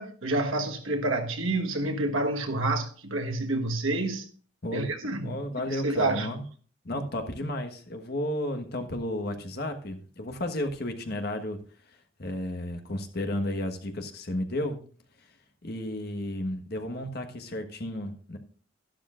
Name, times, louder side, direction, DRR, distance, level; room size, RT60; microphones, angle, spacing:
voice 1, 0.0-4.3 4.7-5.4 5.7-6.3, right 2 dB, 80° right, 1.4 m, -28 dB
voice 2, 5.2-6.4 6.8-11.6 12.2-14.8 15.6-18.4, left 1 dB, 50° left, 1.3 m, -33 dB
12.0 x 12.0 x 2.5 m
head